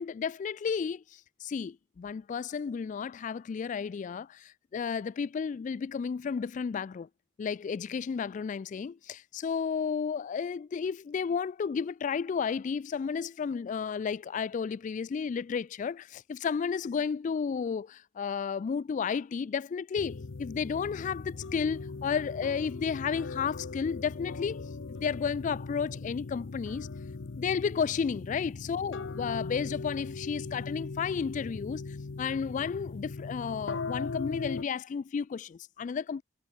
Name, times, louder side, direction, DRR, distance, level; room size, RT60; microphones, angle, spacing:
voice 1, 0.0-7.1 7.4-26.9 27.4-36.2, left 6 dB, 40° left, 0.3 m, -32 dB
sound 1, 20.0-34.6, left 3 dB, 80° left, 0.7 m, -39 dB
head